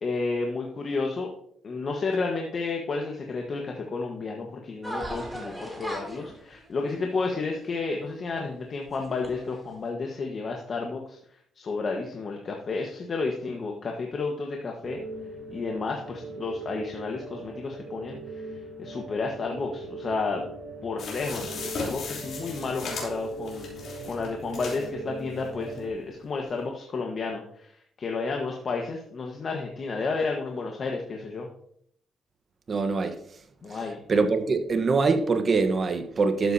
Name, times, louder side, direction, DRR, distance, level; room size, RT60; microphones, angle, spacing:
voice 1, 0.0-1.3 1.6-11.2 11.6-15.0 15.5-20.4 20.8-31.5 33.6-34.0, left 4 dB, 45° left, 1.3 m, -31 dB
sound 1, 4.8-8.4 8.9-9.7, right 1 dB, 5° right, 2.9 m, -39 dB
sound 2, 14.8-25.9, right 2 dB, 25° right, 3.9 m, -40 dB
sound 3, 21.0-24.9 25.4-25.5 25.7-25.8, left 4 dB, 65° left, 3.3 m, -37 dB
voice 2, 32.7-33.2 34.1-36.5, right 4 dB, 40° right, 1.1 m, -23 dB
12.5 x 7.8 x 2.8 m
cardioid pair, 90°, 0 cm